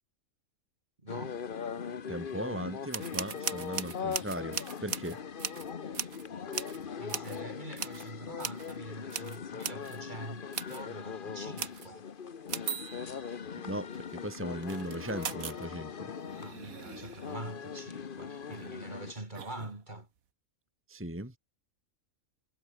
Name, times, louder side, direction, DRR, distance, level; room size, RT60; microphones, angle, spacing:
voice 1, 1.0-1.4 7.0-12.0 16.4-20.1, right 2 dB, 35° right, 3.5 m, -45 dB
sound 1, 1.1-19.1, left 6 dB, 40° left, 1.1 m, -40 dB
voice 2, 2.1-5.2 13.6-16.1 20.9-21.3, right 1 dB, 10° right, 2.1 m, -38 dB
sound 2, 2.9-6.3 6.5-6.8 7.1-7.4 7.8-8.1 8.4-8.7 9.0-10.0 10.5-10.8 11.6-11.9 12.5-13.5 14.6-15.7 16.1-17.4 18.4-18.7 19.3-19.8, right 7 dB, 80° right, 1.9 m, -39 dB
omnidirectional pair, 1.5 m